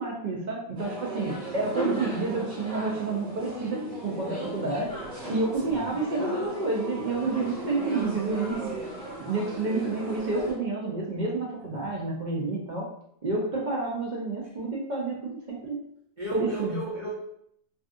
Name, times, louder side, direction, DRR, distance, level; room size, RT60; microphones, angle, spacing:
voice 1, 0.0-4.9 5.3-8.7 9.2-12.9 13.2-15.8 16.3-16.8, right 3 dB, 65° right, -4 dB, 0.4 m, -29 dB
sound 1, 0.7-10.5, right 1 dB, 5° left, 1.1 m, -36 dB
voice 2, 5.6-5.9 11.7-12.0 16.2-17.1, right 2 dB, 40° right, -6 dB, 0.8 m, -34 dB
2.5 x 2.4 x 2.5 m, 0.70 s
omnidirectional pair, 1.4 m